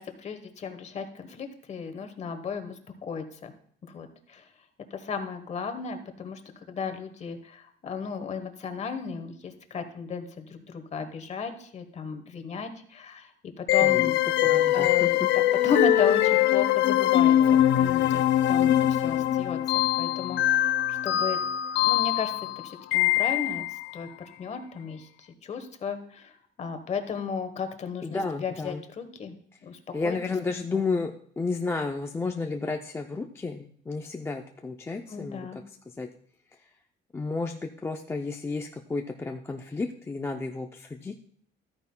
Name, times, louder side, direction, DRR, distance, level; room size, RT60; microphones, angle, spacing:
voice 1, 0.0-2.7 3.0-3.5 3.9-4.5 4.9-6.4 6.7-13.3 13.6-14.2 14.5-15.2 15.6-19.6 20.0-20.4 20.9-21.4 21.8-22.3 22.6-23.6 23.9-24.1 24.4-25.1 25.4-26.3 26.6-29.3 29.6-29.8 30.0-30.2 30.7-30.9 35.1-35.6, left 5 dB, 35° left, 8 dB, 1.1 m, -34 dB
sound 1, 13.7-23.8, left 13 dB, 65° left, 0.5 m, -23 dB
voice 2, 13.8-14.1 14.4-15.3 28.0-28.8 29.9-35.5 36.0-36.1 37.1-41.1, left 3 dB, 10° left, 3 dB, 0.4 m, -32 dB
13.5 x 9.4 x 2.2 m, 0.62 s
cardioid pair, 150°, 20 cm